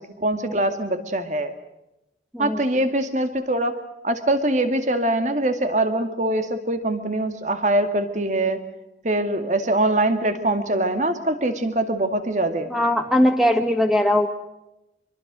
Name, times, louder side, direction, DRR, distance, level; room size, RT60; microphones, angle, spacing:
voice 1, 0.2-1.5 2.4-3.8 4.0-8.6 9.0-12.7, right 1 dB, 40° right, 8 dB, 2.3 m, -23 dB
voice 2, 12.7-14.3, left 1 dB, ahead, 5 dB, 1.8 m, -20 dB
25.5 x 24.0 x 6.3 m, 0.93 s
head